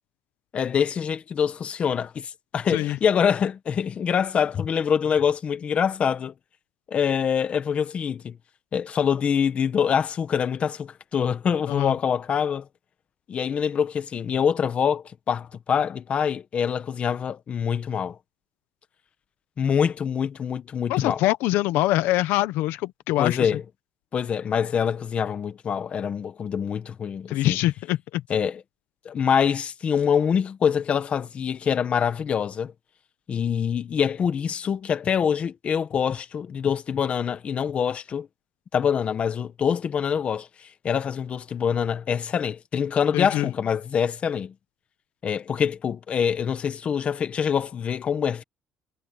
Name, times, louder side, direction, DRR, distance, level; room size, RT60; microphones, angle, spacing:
voice 1, 0.5-6.3 6.9-8.4 8.7-12.7 13.3-18.2 19.6-21.2 23.2-23.6 24.1-27.6 28.3-28.6 29.0-32.7 33.3-38.3 38.7-44.5 45.2-48.4, left 7 dB, 35° left, 1.4 m, -25 dB
voice 2, 20.9-23.5 27.3-28.2 43.1-43.5, left 16 dB, 90° left, 1.0 m, -24 dB
cardioid pair, 155°, 4 cm